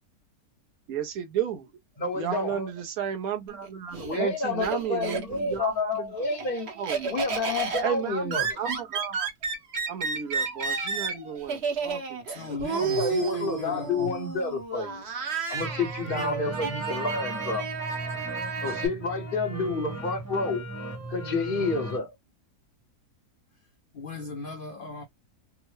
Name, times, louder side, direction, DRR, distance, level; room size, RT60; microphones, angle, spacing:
voice 1, 0.9-1.7 2.2-6.1 6.8-7.2 7.8-9.3 9.9-12.5, right 8 dB, 70° right, 1.2 m, -33 dB
voice 2, 2.0-2.7 4.0-6.7 7.1-8.6 12.7-15.0 15.5-17.7 18.6-20.7 21.1-22.1, left 4 dB, 45° left, 0.8 m, -29 dB
Laughter, 3.5-5.6 6.0-18.9, right 5 dB, 50° right, 1.0 m, -32 dB
voice 3, 12.3-14.1 16.1-16.4 23.9-25.0, left 3 dB, 65° left, 0.5 m, -38 dB
sound 1, 15.6-22.0, right 2 dB, 15° right, 0.8 m, -37 dB
3.5 x 2.1 x 3.0 m
omnidirectional pair, 1.6 m